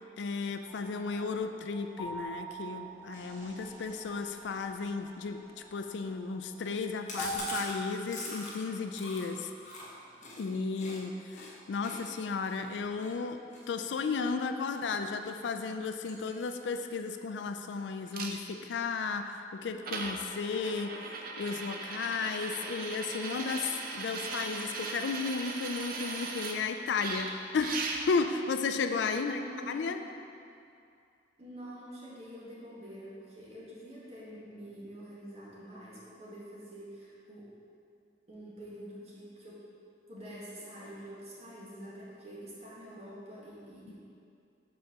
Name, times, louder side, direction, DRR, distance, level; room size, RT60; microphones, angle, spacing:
voice 1, 0.2-5.5 5.7-9.5 10.4-13.4 13.7-21.0 21.4-29.4 29.7-30.0 43.9-44.0, left 4 dB, 70° left, 7 dB, 0.4 m, -34 dB
sound 1, 0.7-7.4, right 1 dB, 15° right, 1.5 m, -45 dB
Chewing mastication, 7.1-11.0 11.3-11.5 11.8-14.8 15.2-15.5 15.8-16.7 17.0-17.1 17.4-17.5 17.8-18.3, left 2 dB, 40° left, 1.3 m, -43 dB
sound 2, 18.1-18.3 19.3-19.4 19.8-26.6 27.0-28.3 29.0-29.1, right 3 dB, 50° right, 0.6 m, -38 dB
voice 2, 29.3-30.0 31.4-37.5 38.3-39.6 40.1-43.9, equal, 35° right, -7 dB, 1.7 m, -47 dB
5.1 x 4.6 x 6.0 m, 2.5 s
head